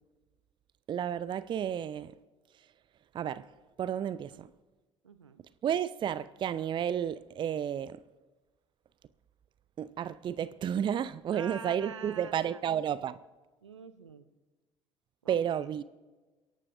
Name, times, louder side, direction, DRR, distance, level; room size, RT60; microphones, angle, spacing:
voice 1, 0.9-2.2 3.1-3.5 3.8-4.5 5.6-8.0 9.8-13.2 15.3-15.8, right 9 dB, 30° right, 0.5 m, -32 dB
voice 2, 5.0-5.4 11.3-12.6 13.6-14.3 15.2-15.7, right 6 dB, 80° right, 0.7 m, -46 dB
29.5 x 11.5 x 2.6 m
figure-of-eight pair, 60°, 15 cm